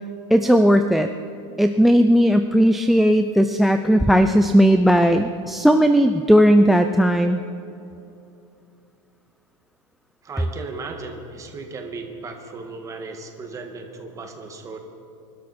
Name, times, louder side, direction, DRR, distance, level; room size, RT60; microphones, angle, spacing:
voice 1, 0.3-1.1 1.6-7.4, equal, ahead, 9 dB, 0.4 m, -16 dB
voice 2, 10.2-14.8, right 3 dB, 20° right, 4 dB, 1.8 m, -36 dB
24.5 x 12.5 x 4.3 m, 2.8 s
supercardioid pair, 145°, 15 cm